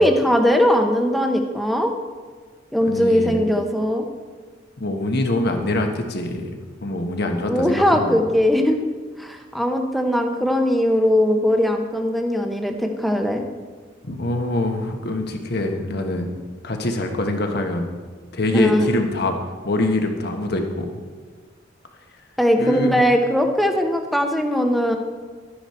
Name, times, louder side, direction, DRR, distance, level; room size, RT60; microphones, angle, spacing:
voice 1, 0.0-1.9 2.7-4.1 7.4-8.9 9.2-13.4 18.5-18.9 22.4-25.0, equal, ahead, 4 dB, 0.9 m, -19 dB
voice 2, 2.9-3.3 4.8-8.2 14.0-17.9 18.3-19.4 19.6-21.0 22.6-23.0, left 1 dB, 55° left, 4 dB, 1.3 m, -24 dB
12.5 x 10.0 x 4.4 m, 1.5 s
head